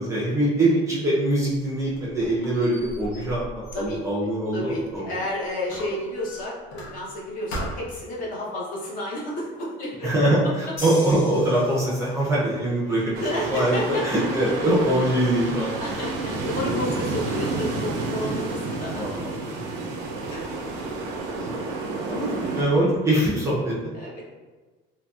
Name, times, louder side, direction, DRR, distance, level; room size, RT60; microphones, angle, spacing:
voice 1, 0.0-5.2 10.0-15.8 16.6-16.8 19.0-19.3 20.5-20.6 21.1-21.6 22.1-23.9, right 1 dB, 15° right, -6 dB, 0.4 m, -23 dB
Squeak, 1.6-5.2 5.7-7.2 7.5-8.1, equal, 75° left, 0.8 m, -39 dB
voice 2, 3.7-4.2 4.5-10.3 12.9-14.3 15.4-15.5 15.8-19.0 20.3-20.4 23.9-24.2, left 1 dB, 45° left, -4 dB, 0.7 m, -31 dB
sound 1, 10.8-12.3, equal, 15° left, 1.3 m, -38 dB
sound 2, 13.1-22.6, right 3 dB, 85° right, 0.5 m, -30 dB
2.7 x 2.7 x 2.3 m, 1.3 s
cardioid pair, 170°, 19 cm